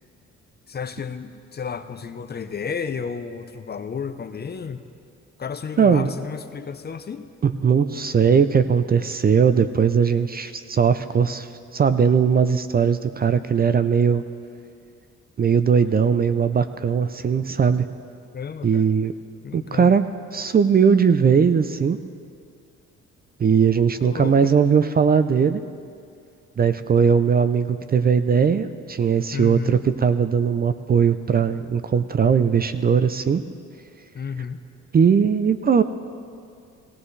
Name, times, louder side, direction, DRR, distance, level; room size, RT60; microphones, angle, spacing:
voice 1, 0.7-4.9 5.4-7.3 18.3-18.9 19.4-19.9 24.0-24.5 29.3-29.8 34.1-34.6, left 6 dB, 35° left, 9 dB, 0.6 m, -32 dB
voice 2, 5.8-6.1 7.4-11.5 11.7-14.2 15.4-17.9 18.6-19.1 19.5-20.0 20.3-22.0 23.4-25.6 26.6-33.4 34.9-35.8, right 6 dB, 30° right, 11 dB, 0.5 m, -19 dB
17.5 x 15.5 x 3.2 m, 2.3 s
cardioid pair, 90°, 30 cm